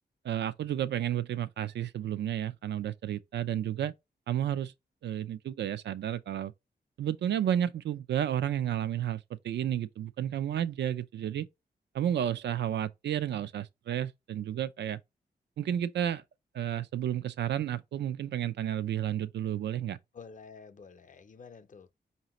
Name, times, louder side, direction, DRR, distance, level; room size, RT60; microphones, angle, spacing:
voice 1, 0.2-3.9 4.3-4.7 5.0-6.5 7.0-11.5 11.9-15.0 15.6-16.2 16.5-20.0, right 10 dB, 80° right, 0.4 m, -31 dB
voice 2, 20.1-21.9, left 5 dB, 45° left, 0.6 m, -49 dB
4.9 x 2.7 x 2.9 m
cardioid pair, 70°, 18 cm